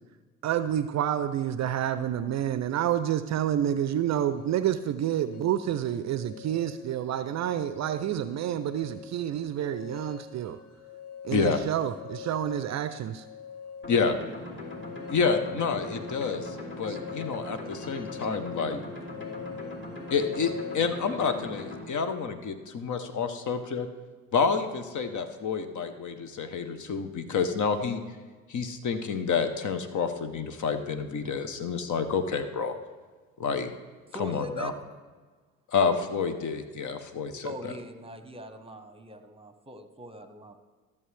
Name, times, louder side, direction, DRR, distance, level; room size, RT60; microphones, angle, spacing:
voice 1, 0.4-10.6 11.2-13.3 16.9-17.0, right 10 dB, 45° right, 12 dB, 0.5 m, -29 dB
sound 1, 4.3-20.8, left 6 dB, 75° left, 1.1 m, -45 dB
sound 2, 13.8-21.8, left 2 dB, 30° left, 2.8 m, -40 dB
voice 2, 15.1-18.7 20.1-23.9 24.3-28.0 28.5-32.8 33.4-33.7 34.2-34.7 35.7-37.5, left 5 dB, 45° left, 9 dB, 1.0 m, -29 dB
voice 3, 34.1-34.7 37.4-40.6, equal, 15° right, 8 dB, 1.1 m, -40 dB
13.5 x 7.0 x 3.3 m, 1.4 s
hypercardioid pair, 50°, 40 cm